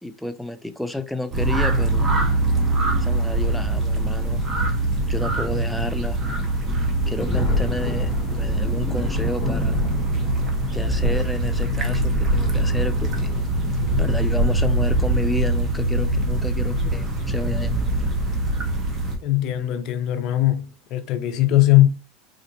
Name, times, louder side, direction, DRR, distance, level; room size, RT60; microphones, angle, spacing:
voice 1, 0.0-2.1 3.0-4.4 5.1-6.2 7.1-9.8 10.7-13.7 14.0-18.1, left 1 dB, 5° left, 0.4 m, -31 dB
sound 1, 1.3-19.2, right 2 dB, 25° right, 0.9 m, -23 dB
Thunder, 7.1-14.2 15.2-15.3 16.8-17.0 17.4-17.5 19.4-19.6 20.3-20.7, left 3 dB, 25° left, 1.3 m, -34 dB
sound 2, 9.6-17.2, left 5 dB, 65° right, 1.4 m, -32 dB
voice 2, 19.2-20.6 20.9-21.9, left 15 dB, 55° left, 0.6 m, -19 dB
4.2 x 2.5 x 2.9 m
supercardioid pair, 120°, 0 cm